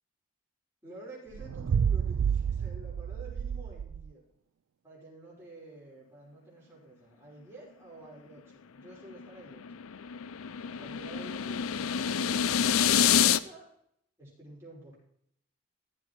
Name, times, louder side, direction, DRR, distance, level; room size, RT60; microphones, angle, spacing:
voice 1, 0.8-4.2 4.8-9.8 10.7-13.7 14.2-15.0, right 1 dB, 10° right, -5 dB, 5.4 m, -50 dB
sound 1, 1.3-4.1, right 7 dB, 80° right, 0.3 m, -30 dB
sound 2, 9.1-13.4, left 8 dB, 85° left, 0.5 m, -27 dB
15.0 x 7.8 x 4.6 m, 0.71 s
head